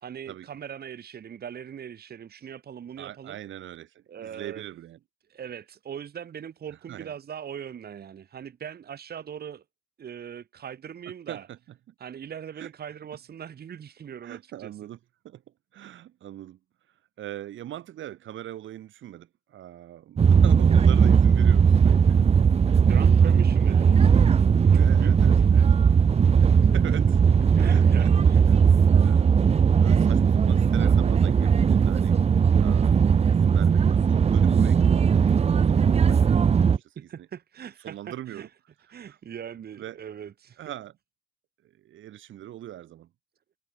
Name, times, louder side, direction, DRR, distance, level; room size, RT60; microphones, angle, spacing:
voice 1, 0.0-3.4 4.1-4.6 5.3-9.6 10.0-11.5 12.0-14.7 22.9-25.7 26.6-27.0 27.6-28.4 37.0-38.5 38.9-40.6, right 8 dB, 50° right, 2.0 m, -40 dB
voice 2, 3.0-5.0 6.9-7.1 11.3-11.6 11.9-12.0 12.6-12.7 14.2-15.0 15.2-15.4 15.7-16.6 17.2-22.2 22.7-22.9 23.2-23.8 24.8-25.7 26.4-27.0 27.6-29.3 29.8-32.2 32.6-37.3 37.8-38.5 39.1-39.2 39.8-40.0 40.6-41.0 41.6-43.1, right 12 dB, 75° right, 2.7 m, -41 dB
sound 1, 20.2-36.8, right 6 dB, 30° right, 0.6 m, -19 dB
cardioid pair, 90°, 20 cm